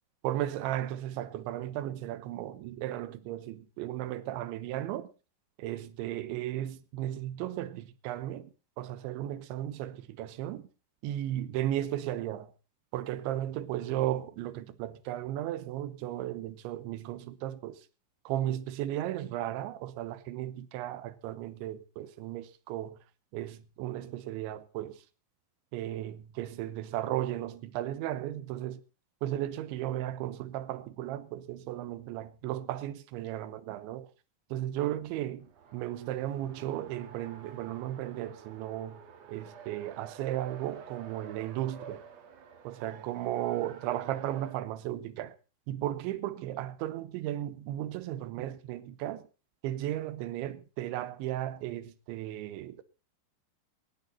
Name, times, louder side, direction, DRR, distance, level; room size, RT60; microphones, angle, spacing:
voice 1, 0.2-5.1 5.6-8.5 8.8-10.7 11.0-12.5 12.9-17.8 18.3-22.9 23.3-24.9 25.7-28.8 29.2-34.1 34.5-35.5 35.7-39.0 39.3-42.0 42.6-45.3 45.7-49.3 49.6-52.8, right 13 dB, 75° right, 3.1 m, -35 dB
Race car auto racing, 35.4-44.6, right 7 dB, 55° right, 2.0 m, -50 dB
18.5 x 13.0 x 4.2 m
omnidirectional pair, 5.5 m